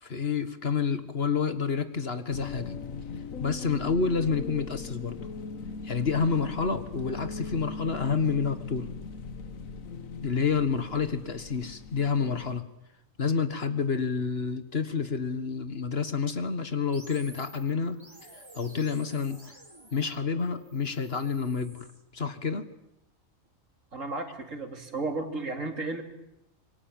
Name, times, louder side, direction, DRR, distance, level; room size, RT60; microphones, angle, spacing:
voice 1, 0.0-2.7 3.4-5.2 5.8-8.9 10.2-12.6 13.2-18.0 18.6-19.5 19.9-21.9 22.1-22.7, left 5 dB, 50° left, 11 dB, 1.7 m, -29 dB
sound 1, 2.3-12.6, left 4 dB, 85° left, 1.7 m, -39 dB
sound 2, 16.9-22.0, right 1 dB, 20° right, 2.3 m, -51 dB
voice 2, 23.9-26.0, right 3 dB, 75° right, 5 dB, 3.3 m, -33 dB
26.0 x 22.5 x 8.9 m, 0.86 s
omnidirectional pair, 1.4 m